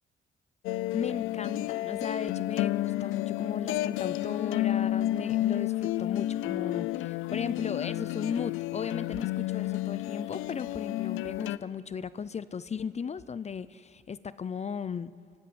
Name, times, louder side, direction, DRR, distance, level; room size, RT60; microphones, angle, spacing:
sound 1, 0.6-11.6, left 15 dB, 90° left, 0.5 m, -31 dB
voice 1, 0.9-15.1, left 6 dB, 35° left, 17 dB, 0.6 m, -36 dB
25.5 x 16.0 x 9.6 m, 2.6 s
cardioid pair, 90°, 20 cm